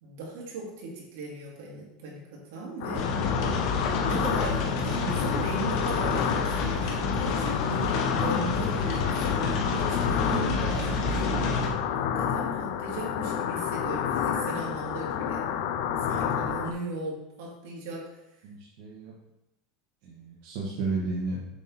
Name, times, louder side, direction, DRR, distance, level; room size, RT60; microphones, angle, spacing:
voice 1, 0.0-3.1 4.0-11.5 12.1-15.4 16.0-18.4, right 3 dB, 80° right, -3 dB, 2.3 m, -37 dB
sound 1, 2.8-16.7, left 8 dB, 70° left, 0.5 m, -30 dB
sound 2, 2.9-11.7, left 3 dB, 50° left, 1.2 m, -29 dB
voice 2, 18.4-19.1 20.0-21.5, right 3 dB, 65° right, -4 dB, 1.3 m, -33 dB
7.4 x 3.7 x 4.2 m, 0.85 s
supercardioid pair, 155°, 0 cm